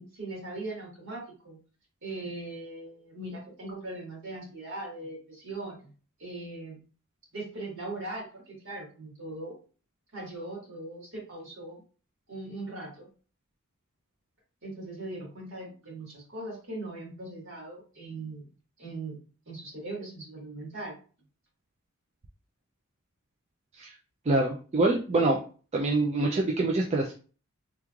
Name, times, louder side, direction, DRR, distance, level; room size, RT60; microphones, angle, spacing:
voice 1, 0.0-1.6 2.0-5.9 6.2-6.8 7.3-9.5 10.1-11.8 12.3-13.1 14.6-18.5 18.8-19.2 19.5-20.9, right 2 dB, 55° right, -3 dB, 1.7 m, -40 dB
voice 2, 24.3-25.4 25.7-27.1, right 2 dB, 30° right, -1 dB, 0.4 m, -25 dB
3.4 x 3.1 x 2.4 m, 0.38 s
head